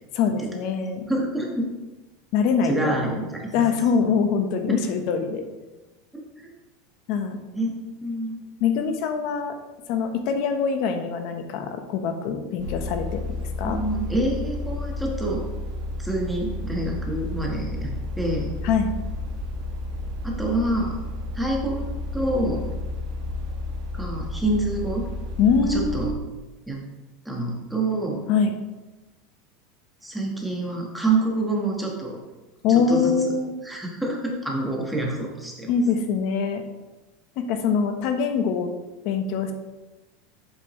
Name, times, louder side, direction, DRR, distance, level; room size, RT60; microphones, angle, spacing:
voice 1, 0.1-1.1 2.3-3.0 3.5-5.4 7.1-7.4 8.6-9.5 9.9-13.8 18.6-18.9 25.4-26.1 28.3-28.5 32.6-33.5 35.7-36.6 37.4-38.7 39.0-39.5, left 6 dB, 50° left, 6 dB, 0.9 m, -23 dB
voice 2, 1.1-1.7 2.6-3.7 4.7-4.8 6.1-6.5 7.5-8.4 13.6-15.4 16.0-18.5 20.2-21.0 21.3-22.6 23.9-25.1 25.7-26.1 26.7-26.8 27.2-28.2 30.0-32.2 32.9-33.1 33.6-35.7, right 2 dB, ahead, -2 dB, 1.4 m, -27 dB
sound 1, 12.6-26.1, left 2 dB, 60° right, 1.6 m, -31 dB
8.0 x 7.0 x 3.1 m, 1.1 s
supercardioid pair, 160°, 0 cm